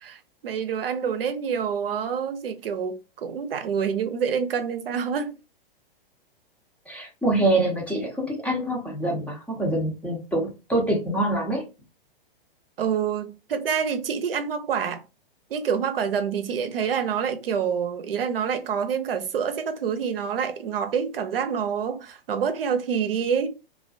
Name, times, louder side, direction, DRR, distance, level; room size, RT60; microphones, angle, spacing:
voice 1, 0.0-5.4 12.8-15.0 15.5-23.5, right 7 dB, 75° right, 0.6 m, -27 dB
voice 2, 6.9-11.6, right 1 dB, 5° left, 0.6 m, -25 dB
2.3 x 2.2 x 2.4 m
hypercardioid pair, 120°, 29 cm